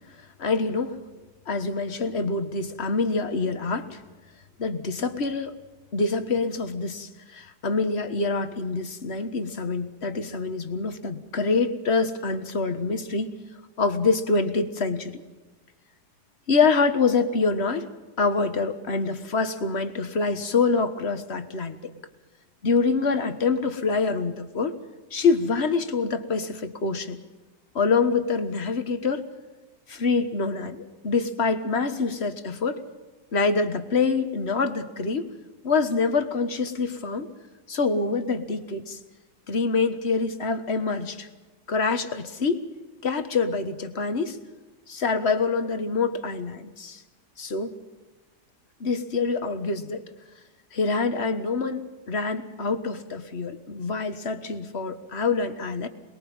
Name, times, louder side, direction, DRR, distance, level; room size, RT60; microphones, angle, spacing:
voice 1, 0.4-1.0 1.5-4.0 4.6-5.5 5.9-13.4 13.8-15.2 16.5-17.9 18.2-21.9 22.6-24.8 25.1-27.2 27.8-29.3 29.9-32.8 33.3-35.3 35.6-37.3 37.7-39.0 39.5-41.3 41.7-42.6 43.0-44.4 44.9-47.0 47.4-47.7 48.8-50.0 50.7-55.9, left 4 dB, 40° left, 9 dB, 1.7 m, -25 dB
28.0 x 21.0 x 5.5 m, 1.2 s
omnidirectional pair, 1.8 m